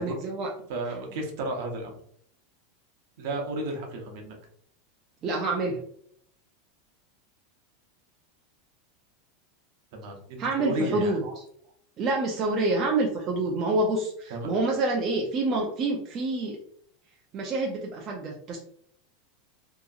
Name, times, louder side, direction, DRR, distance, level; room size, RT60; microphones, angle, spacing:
voice 1, 0.0-0.5 5.2-5.8 10.4-11.4 12.0-16.6 17.3-18.6, right 2 dB, 25° right, -1 dB, 0.4 m, -27 dB
voice 2, 0.7-2.0 3.2-4.4 9.9-11.2 14.3-14.5, right 1 dB, 55° right, 2 dB, 0.7 m, -33 dB
2.8 x 2.6 x 2.3 m, 0.65 s
supercardioid pair, 170°, 0 cm